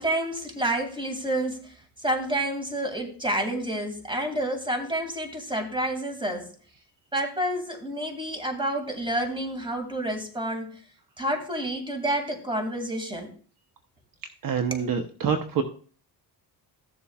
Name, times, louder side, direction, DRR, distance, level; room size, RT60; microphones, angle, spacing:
voice 1, 0.0-6.5 7.1-10.7 11.2-13.3 14.7-14.9, right 1 dB, 10° right, 5 dB, 2.4 m, -29 dB
voice 2, 14.4-15.6, right 6 dB, 55° right, 6 dB, 1.0 m, -26 dB
15.0 x 7.1 x 2.4 m, 0.42 s
cardioid pair, 85°, 41 cm